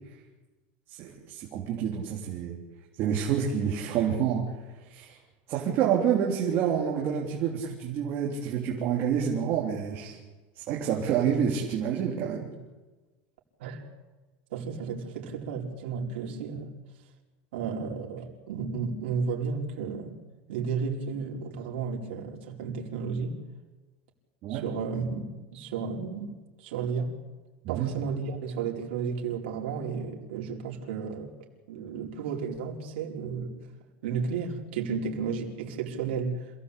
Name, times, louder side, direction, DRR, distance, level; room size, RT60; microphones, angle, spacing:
voice 1, 0.9-2.6 3.0-5.2 5.5-10.2 10.6-12.5 24.4-24.6 27.6-27.9, right 8 dB, 35° right, 3.5 m, -28 dB
voice 2, 14.5-16.7 17.5-20.2 20.5-23.4 24.5-26.3 26.6-27.1 27.7-31.3 31.7-33.6 34.0-36.5, right 5 dB, 75° right, 4.9 m, -33 dB
27.5 x 17.0 x 8.5 m
supercardioid pair, 175°, 6 cm